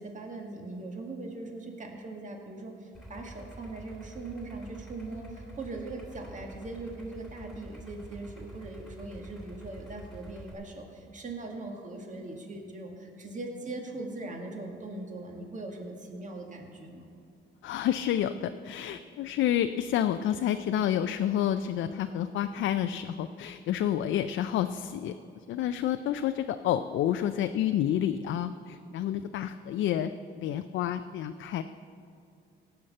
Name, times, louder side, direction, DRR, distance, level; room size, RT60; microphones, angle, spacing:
voice 1, 0.0-17.1, right 2 dB, 40° right, 2 dB, 2.0 m, -40 dB
Idling, 2.9-10.5, right 1 dB, ahead, 3.0 m, -47 dB
voice 2, 17.6-25.1 25.5-31.6, left 10 dB, 75° left, 9 dB, 0.4 m, -29 dB
16.5 x 5.8 x 7.6 m, 2.4 s
cardioid pair, 90°, 20 cm